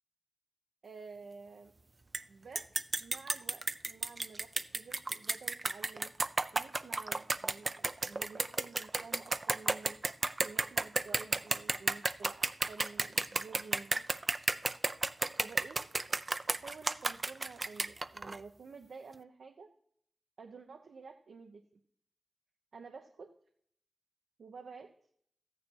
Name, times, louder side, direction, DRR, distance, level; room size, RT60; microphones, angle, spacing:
voice 1, 0.8-1.7 2.3-2.7 3.0-6.1 6.5-10.0 10.4-14.0 15.4-15.8 16.5-19.7 20.4-21.6 22.7-23.3 24.4-24.9, right 4 dB, 75° right, 4 dB, 0.9 m, -51 dB
sound 1, 2.1-2.2 2.6-18.4, right 3 dB, 35° right, 0.5 m, -32 dB
13.5 x 9.3 x 4.6 m, 0.65 s
wide cardioid pair, 105°, 0 cm